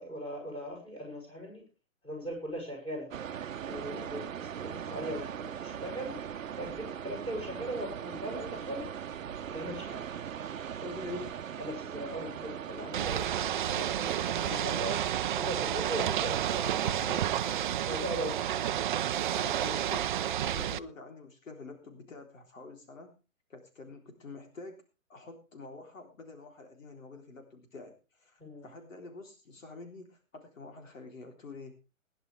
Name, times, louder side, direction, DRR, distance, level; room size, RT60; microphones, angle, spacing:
voice 1, 0.0-1.6 2.0-3.1 3.7-6.2 6.6-8.9 9.5-10.0 10.8-11.3 11.6-15.0 15.4-17.2 17.9-18.6 20.5-20.6 28.4-28.7, equal, 15° left, 1 dB, 7.7 m, -39 dB
sound 1, 3.1-13.1, right 8 dB, 70° right, 0.9 m, -40 dB
Ocean / Boat Water vehicle, 12.9-20.8, right 11 dB, 40° right, 0.5 m, -30 dB
voice 2, 14.3-15.1 16.8-17.7 19.3-23.2 23.5-24.8 25.1-31.7, left 3 dB, 70° left, 4 dB, 3.7 m, -47 dB
20.0 x 11.0 x 3.4 m, 0.32 s
hypercardioid pair, 135°, 40 cm